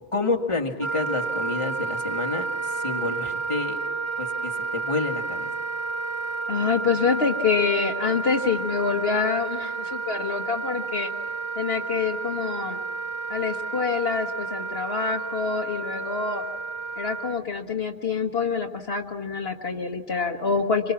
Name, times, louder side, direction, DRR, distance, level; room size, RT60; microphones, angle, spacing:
voice 1, 0.1-3.8 4.2-5.5, left 3 dB, 25° left, 2 dB, 1.8 m, -29 dB
Wind instrument woodwind instrument, 0.8-17.4, right 4 dB, 25° right, 1.3 m, -31 dB
voice 2, 6.5-11.1 11.6-12.8 13.3-16.4 17.0-20.9, left 5 dB, 60° left, 3 dB, 1.7 m, -26 dB
26.0 x 23.0 x 7.2 m, 1.3 s
omnidirectional pair, 1.2 m